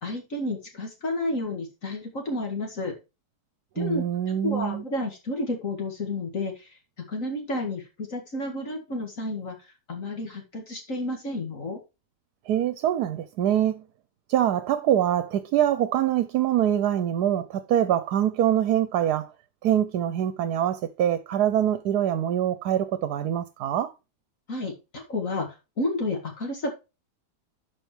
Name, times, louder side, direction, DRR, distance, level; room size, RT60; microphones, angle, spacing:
voice 1, 0.0-2.9 3.8-11.8 24.5-25.5 25.8-26.7, left 2 dB, 50° left, 2.3 m, -31 dB
voice 2, 3.8-4.8 12.5-13.8 14.3-19.3 19.6-23.9, right 10 dB, 75° right, 1.2 m, -24 dB
12.0 x 5.3 x 3.3 m
omnidirectional pair, 1.7 m